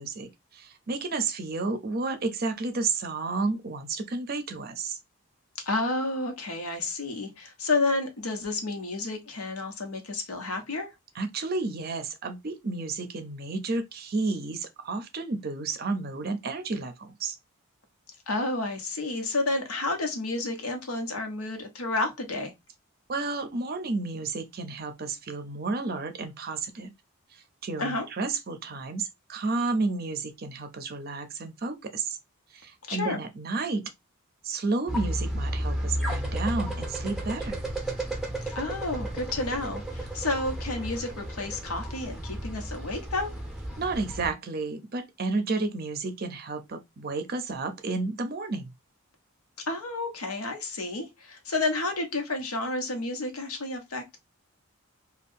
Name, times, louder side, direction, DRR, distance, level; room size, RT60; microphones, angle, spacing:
voice 1, 0.0-5.0 11.1-17.4 23.1-26.9 27.3-32.2 32.5-33.9 34.4-37.6 43.8-48.7, right 3 dB, 45° right, 0.5 m, -31 dB
voice 2, 5.6-10.9 18.3-22.5 27.8-28.1 32.9-33.2 38.5-43.3 49.7-54.2, left 2 dB, 90° left, 0.9 m, -30 dB
sound 1, 34.9-44.3, right 1 dB, ahead, 0.7 m, -33 dB
2.7 x 2.3 x 3.4 m
head